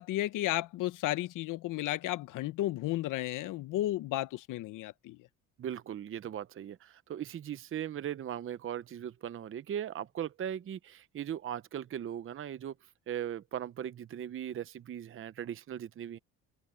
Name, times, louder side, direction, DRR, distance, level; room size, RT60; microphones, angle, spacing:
voice 1, 0.0-5.2, left 15 dB, 70° left, 1.0 m, -33 dB
voice 2, 5.6-16.2, right 10 dB, 40° right, 0.8 m, -39 dB
cardioid pair, 100°, 32 cm